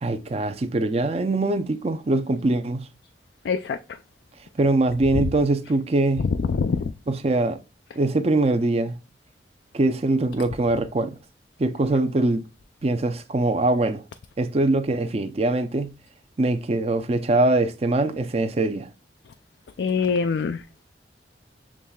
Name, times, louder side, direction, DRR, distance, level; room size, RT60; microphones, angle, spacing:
voice 1, 0.0-2.9 4.6-6.2 7.1-7.6 8.0-8.9 9.7-11.2 11.6-12.4 12.8-14.0 14.4-15.9 16.4-18.9, right 2 dB, 35° right, 0.5 m, -22 dB
voice 2, 3.5-3.8 6.4-6.8 19.8-20.6, left 5 dB, 70° left, 0.3 m, -23 dB
7.3 x 3.1 x 2.3 m
head